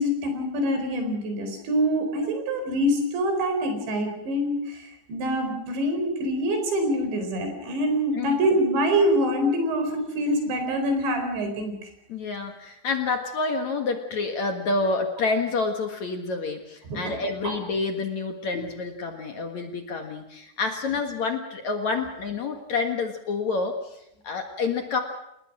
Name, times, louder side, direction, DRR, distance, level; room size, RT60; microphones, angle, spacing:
voice 1, 0.0-11.7 16.9-17.2 17.4-17.5, equal, 85° right, 6 dB, 6.8 m, -25 dB
voice 2, 12.1-25.0, left 4 dB, 55° left, 5 dB, 2.4 m, -28 dB
29.5 x 19.0 x 6.2 m, 0.80 s
omnidirectional pair, 5.0 m